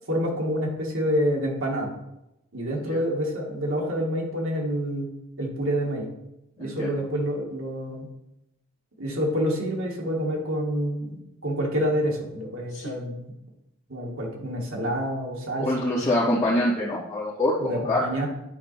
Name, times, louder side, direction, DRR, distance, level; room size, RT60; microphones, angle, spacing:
voice 1, 0.1-2.0 2.5-5.1 5.4-6.1 6.6-8.1 9.0-13.3 13.9-16.0 17.6-18.3, equal, 75° right, -2 dB, 2.0 m, -28 dB
voice 2, 6.6-6.9 12.7-12.9 15.6-18.0, left 1 dB, 15° left, -14 dB, 2.6 m, -25 dB
11.0 x 4.2 x 4.2 m, 0.89 s
head